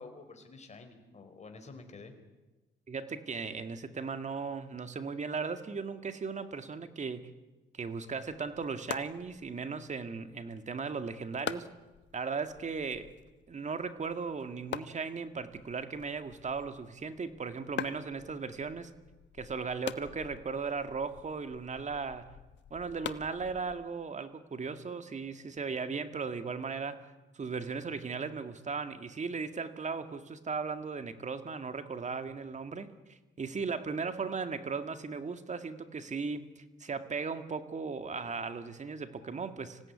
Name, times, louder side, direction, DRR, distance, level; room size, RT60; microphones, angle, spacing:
voice 1, 0.0-2.1, left 3 dB, 35° left, 5 dB, 4.6 m, -49 dB
voice 2, 2.9-7.3 7.7-11.7 12.1-13.1 13.5-18.9 19.4-22.3 22.7-39.8, right 5 dB, 35° right, 9 dB, 2.1 m, -37 dB
sound 1, 8.2-24.0, left 9 dB, 65° left, 1.2 m, -46 dB
26.0 x 17.0 x 9.8 m, 1.1 s
cardioid pair, 90°, 20 cm